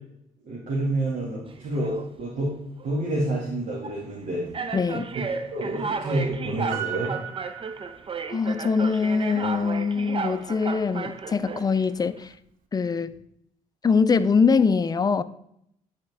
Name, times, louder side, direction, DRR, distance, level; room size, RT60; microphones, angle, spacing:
voice 1, 0.4-2.5 2.8-4.5 5.1-7.2, right 1 dB, 60° right, 2.0 m, -28 dB
sound 1, 1.5-2.1 2.8-3.0 3.8-4.0 4.5-11.8, right 5 dB, 40° right, 0.7 m, -33 dB
voice 2, 4.7-5.1 8.3-12.3 12.7-13.1 13.8-15.2, left 5 dB, 25° left, 0.4 m, -23 dB
Piano, 6.7-8.5 8.8-8.9, right 10 dB, 75° right, 0.9 m, -36 dB
10.5 x 4.3 x 3.6 m
cardioid pair, 80°, 15 cm